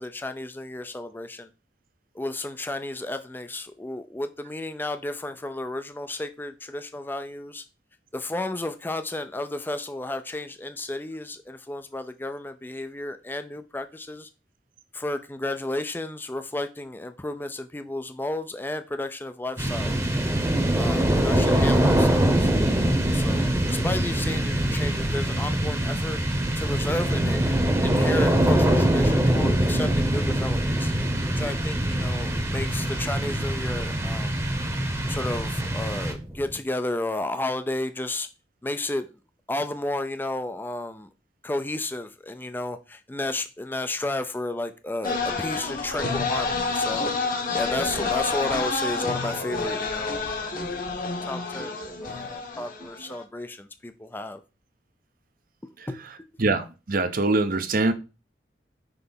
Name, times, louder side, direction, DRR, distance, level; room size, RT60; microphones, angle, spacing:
voice 1, 0.0-1.5 2.1-7.6 8.1-14.3 14.9-20.1 20.7-26.2 26.6-30.9 31.4-34.4 35.1-38.3 38.6-39.1 39.5-41.1 41.4-50.6 51.2-54.4 55.9-56.0, left 2 dB, 10° left, 0.4 m, -32 dB
sound 1, 19.6-36.5, right 1 dB, 15° right, 0.9 m, -23 dB
sound 2, 45.0-53.2, left 3 dB, 50° left, 1.2 m, -29 dB
voice 2, 56.4-57.9, right 2 dB, 50° right, 0.7 m, -23 dB
6.0 x 3.3 x 5.4 m
head